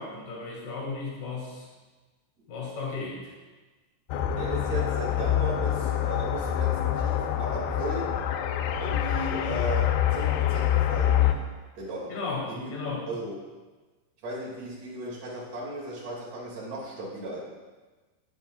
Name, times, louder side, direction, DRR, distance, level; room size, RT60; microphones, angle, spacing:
voice 1, 0.0-1.7 2.5-3.2 12.1-13.0, left 4 dB, 55° left, -3 dB, 2.9 m, -34 dB
sound 1, 4.1-11.3, left 11 dB, 90° left, 2.2 m, -26 dB
voice 2, 4.4-8.3 8.8-11.4 11.8-12.2 12.5-12.7 13.1-13.3 14.2-17.4, right 1 dB, 45° right, -5 dB, 2.5 m, -36 dB
12.0 x 7.5 x 2.2 m, 1.2 s
omnidirectional pair, 5.0 m